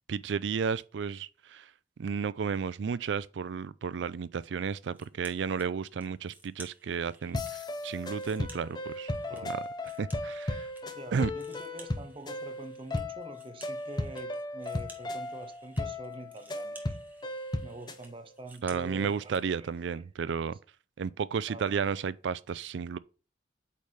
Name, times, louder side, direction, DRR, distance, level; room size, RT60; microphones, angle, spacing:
voice 1, 0.1-1.7 2.0-9.1 9.4-9.6 10.0-10.7 11.1-11.3 18.6-20.6 21.0-23.0, right 6 dB, 80° right, 0.4 m, -33 dB
sound 1, 4.9-5.7 6.0-7.5 7.9-10.8 11.1-19.4, right 2 dB, 10° right, 1.1 m, -55 dB
sound 2, 7.3-18.0, left 2 dB, 25° left, 0.5 m, -36 dB
voice 2, 9.3-9.6 10.9-17.0 17.6-20.0 21.5-21.8, right 1 dB, 30° right, 0.6 m, -46 dB
8.4 x 3.2 x 3.6 m
head